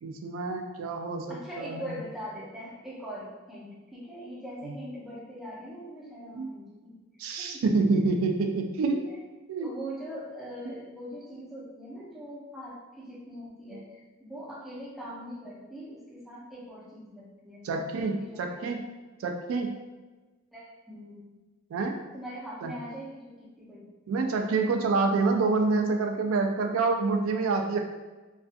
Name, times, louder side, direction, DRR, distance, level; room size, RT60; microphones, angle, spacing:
voice 1, 0.0-1.9 4.6-4.7 6.3-6.5 7.2-9.0 9.5-9.7 13.7-13.8 17.6-18.8 19.2-19.7 21.7-22.0 22.6-22.7 24.1-27.8, right 3 dB, 80° right, 3 dB, 0.3 m, -27 dB
voice 2, 1.3-7.0 7.4-7.8 9.0-9.2 9.6-18.7 20.5-21.3 22.1-23.9, equal, ahead, -7 dB, 0.5 m, -42 dB
2.4 x 2.3 x 2.4 m, 1.2 s
head